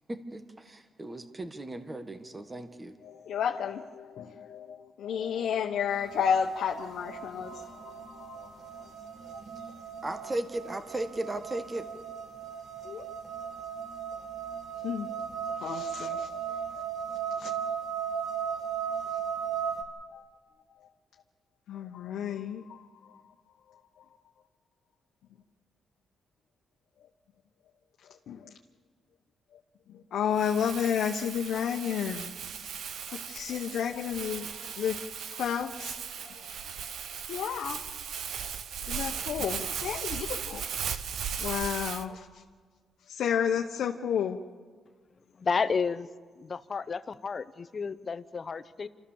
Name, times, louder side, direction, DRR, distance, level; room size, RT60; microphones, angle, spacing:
voice 1, 0.1-2.9 10.0-11.8, right 1 dB, 15° right, 9 dB, 1.3 m, -36 dB
voice 2, 3.0-7.9 8.3-8.5 12.9-13.0 14.8-15.1 15.6-16.3 17.4-17.5 21.7-22.8 28.3-28.4 30.1-32.3 33.1-34.5 34.7-35.0 35.3-35.9 36.3-36.9 37.3-37.8 38.9-40.6 41.4-42.2 43.1-44.4, left 8 dB, 75° left, 2 dB, 1.1 m, -31 dB
sound 1, 5.9-19.8, right 7 dB, 50° right, 2.2 m, -37 dB
Crumpling crinkling, 30.3-42.0, right 7 dB, 70° right, 1.0 m, -37 dB
voice 3, 45.3-46.1 46.4-48.9, left 5 dB, 35° left, 12 dB, 0.8 m, -31 dB
28.5 x 13.5 x 7.2 m, 1.5 s
cardioid pair, 120°, 0 cm